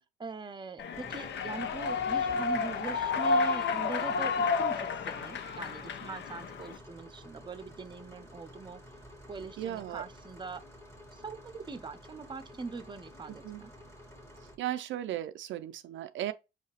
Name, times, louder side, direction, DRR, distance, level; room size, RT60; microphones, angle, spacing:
voice 1, 0.2-8.8 9.3-10.6 11.1-13.7, right 4 dB, 25° right, 0.6 m, -42 dB
Human voice / Clapping / Cheering, 0.8-6.8, left 4 dB, 65° left, 0.6 m, -31 dB
sound 1, 0.9-14.6, equal, 15° left, 1.4 m, -51 dB
voice 2, 9.6-10.0 13.3-13.6 14.4-16.3, right 12 dB, 70° right, 0.4 m, -36 dB
5.7 x 2.8 x 2.8 m
cardioid pair, 90°, 20 cm